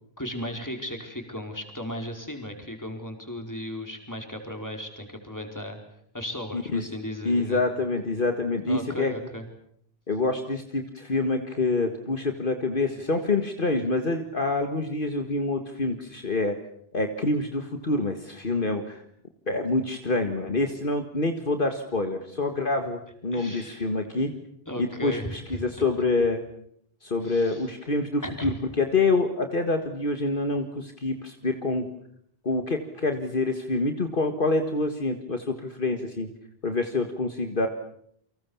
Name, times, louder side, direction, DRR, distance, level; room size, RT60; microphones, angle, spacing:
voice 1, 0.2-5.8 6.1-7.6 8.7-9.4 23.3-23.9 24.1-24.2 24.7-25.8 27.2-27.7 28.2-28.5, equal, 15° left, 4 dB, 4.7 m, -36 dB
voice 2, 6.5-6.8 7.3-9.1 10.1-16.6 16.9-19.0 19.5-24.3 24.8-26.4 27.0-31.9 32.4-36.3 36.6-37.7, left 3 dB, 55° left, 6 dB, 2.0 m, -26 dB
29.5 x 24.5 x 7.2 m, 0.68 s
omnidirectional pair, 1.1 m